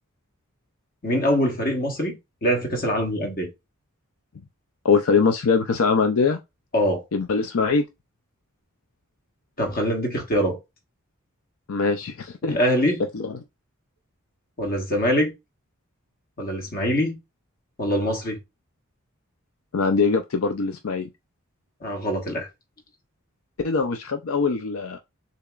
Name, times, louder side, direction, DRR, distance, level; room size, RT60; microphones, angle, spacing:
voice 1, 1.0-3.5 6.7-7.0 9.6-10.6 12.4-13.0 14.6-15.3 16.4-17.2 17.8-18.4 21.8-22.5, equal, 45° left, 1.4 m, -24 dB
voice 2, 4.8-6.4 7.1-7.8 11.7-12.6 13.1-13.3 19.7-21.1 23.6-25.0, left 4 dB, 70° left, 0.5 m, -22 dB
6.7 x 2.9 x 2.4 m
head